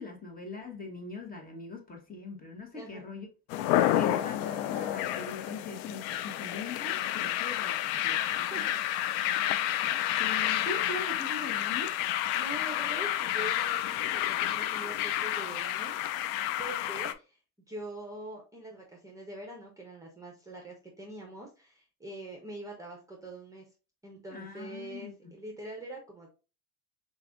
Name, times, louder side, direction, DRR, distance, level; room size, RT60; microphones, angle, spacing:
voice 1, 0.0-3.3 3.9-8.7 10.2-11.9 24.3-25.3, left 3 dB, 20° left, 1.4 m, -41 dB
voice 2, 2.7-3.1 8.2-8.8 9.6-10.0 12.3-16.0 16.6-17.4 17.7-23.7 24.0-26.3, right 1 dB, 5° right, 1.0 m, -44 dB
sound 1, 3.5-17.1, left 13 dB, 60° left, 0.5 m, -30 dB
5.7 x 2.6 x 2.5 m
hypercardioid pair, 100°, 44 cm